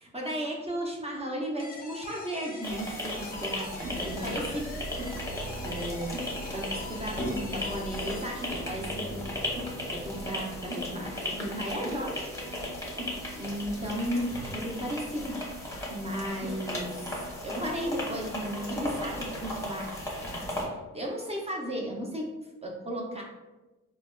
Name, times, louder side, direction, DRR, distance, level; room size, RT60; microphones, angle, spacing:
voice 1, 0.1-4.7 4.9-5.3 5.6-6.1 6.5-9.3 9.6-12.3 13.4-15.3 15.9-17.0 17.4-19.9 20.3-23.2, equal, 20° right, -1 dB, 0.5 m, -35 dB
sound 1, 1.6-8.9, left 2 dB, 30° left, 0.5 m, -44 dB
sound 2, 2.6-20.6, left 1 dB, 10° left, 0.8 m, -36 dB
sound 3, 3.8-19.3, equal, 50° right, 0.8 m, -41 dB
3.3 x 2.1 x 2.2 m, 1.1 s
cardioid pair, 90°, 30 cm